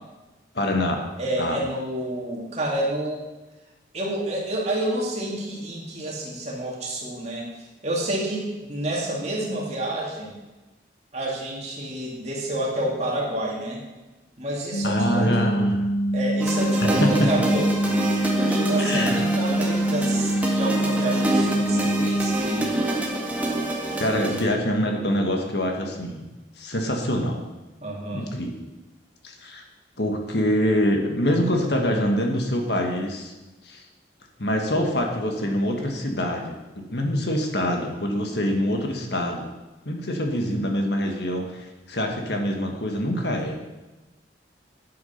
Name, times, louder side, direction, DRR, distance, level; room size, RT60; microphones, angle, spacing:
voice 1, 0.5-1.0 1.4-1.6 14.8-15.8 17.0-17.3 18.8-19.2 20.5-20.6 24.0-26.2 26.6-27.4 28.1-28.7 29.2-29.6 30.0-33.3 33.6-33.8 34.4-36.6 36.9-39.5 39.8-43.6, equal, 65° left, 2 dB, 1.7 m, -25 dB
voice 2, 1.2-3.2 3.9-7.5 7.8-10.4 11.1-13.8 14.4-15.7 16.1-22.8 27.8-28.3, right 1 dB, 35° right, -2 dB, 2.6 m, -29 dB
sound 1, 14.7-22.4, right 1 dB, 80° left, 1.0 m, -24 dB
sound 2, 16.4-24.4, right 1 dB, 10° right, 1.5 m, -27 dB
10.5 x 8.6 x 5.8 m, 1.1 s
head